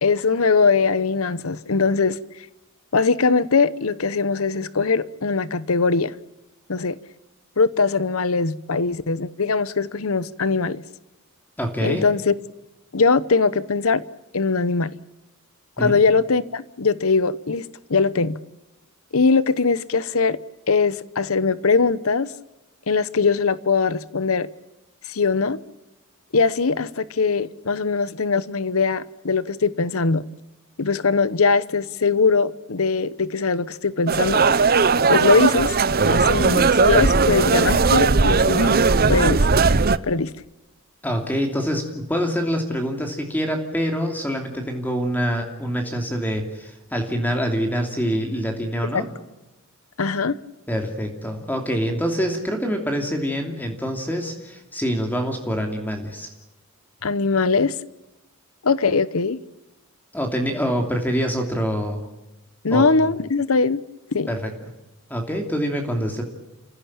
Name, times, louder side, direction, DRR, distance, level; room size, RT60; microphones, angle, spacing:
voice 1, 0.0-2.2 2.9-6.1 6.7-7.0 7.6-10.8 11.8-12.3 12.9-14.0 14.3-15.0 15.8-18.4 19.1-20.4 20.7-22.3 22.9-24.5 25.1-25.6 26.3-30.2 30.8-34.6 35.1-35.7 36.1-38.8 39.1-39.4 40.0-40.3 48.9-49.0 50.0-50.4 57.0-57.7 58.6-59.4 62.6-63.8 64.1-64.3, left 4 dB, 80° left, 0.9 m, -21 dB
voice 2, 11.6-12.0 15.8-16.0 41.0-49.1 50.7-56.3 60.1-62.1 62.7-62.8 64.3-64.5 65.1-66.2, equal, 10° left, 2.8 m, -25 dB
sound 1, 34.1-40.0, right 4 dB, 45° right, 0.8 m, -18 dB
28.5 x 16.0 x 8.7 m
head